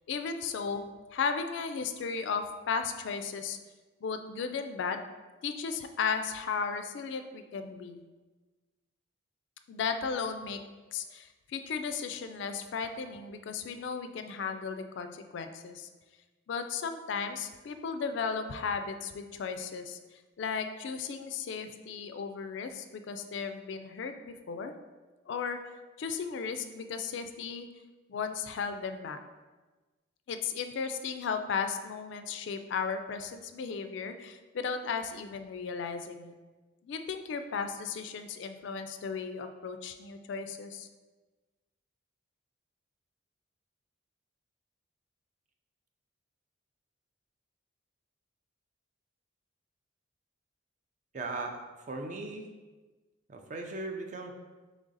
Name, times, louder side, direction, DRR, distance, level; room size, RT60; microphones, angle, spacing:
voice 1, 0.1-0.8 1.1-3.6 4.0-5.0 5.4-8.0 9.7-10.6 10.9-15.9 16.5-20.0 20.4-24.7 25.3-25.6 26.0-27.7 28.1-29.2 30.3-36.3 36.8-40.9, left 5 dB, 60° left, 7 dB, 0.3 m, -35 dB
voice 2, 51.1-51.6 51.9-52.5 53.3-54.3, right 3 dB, 35° right, 4 dB, 0.4 m, -37 dB
3.8 x 3.2 x 3.9 m, 1.2 s
head